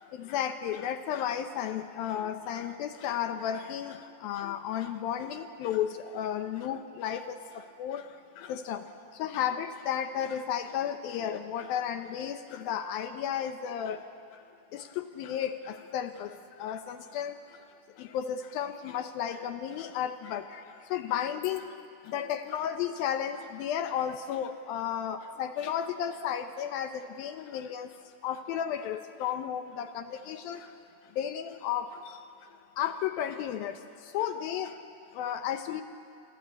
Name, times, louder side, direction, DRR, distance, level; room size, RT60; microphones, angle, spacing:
voice 1, 0.2-4.0 4.2-7.4 7.8-8.0 8.5-8.8 9.2-14.0 14.7-16.3 16.6-17.3 18.1-20.4 20.9-21.6 22.1-26.9 27.2-27.9 28.2-30.6 31.2-31.9 32.8-33.7 34.1-34.7 35.2-35.8, left 9 dB, 75° left, 8 dB, 2.2 m, -33 dB
28.0 x 23.5 x 8.4 m, 2.5 s
omnidirectional pair, 5.0 m